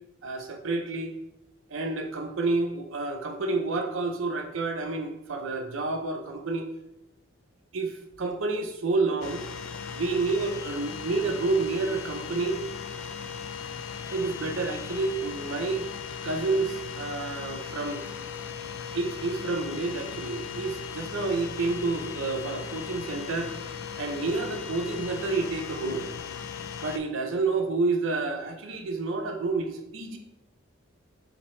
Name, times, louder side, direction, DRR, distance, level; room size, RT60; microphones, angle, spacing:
voice 1, 0.2-1.1 1.7-6.7 7.7-9.4 10.0-12.6 14.1-15.9 16.2-18.0 18.9-23.5 24.0-26.1 26.8-30.2, right 3 dB, 70° right, 5 dB, 0.5 m, -29 dB
sound 1, 9.2-27.0, left 7 dB, 80° left, 0.4 m, -38 dB
3.0 x 2.8 x 4.2 m, 0.88 s
head